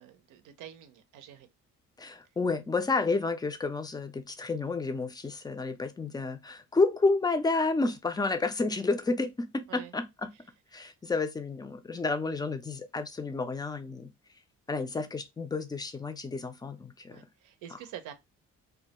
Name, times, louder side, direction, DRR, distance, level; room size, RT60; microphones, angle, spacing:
voice 1, 0.0-1.5 9.7-9.9 17.1-18.1, right 10 dB, 85° right, 0.5 m, -46 dB
voice 2, 2.0-10.3 10.7-14.1 14.7-17.2, left 3 dB, 15° left, 0.4 m, -30 dB
2.3 x 2.1 x 2.8 m
cardioid pair, 90°, 30 cm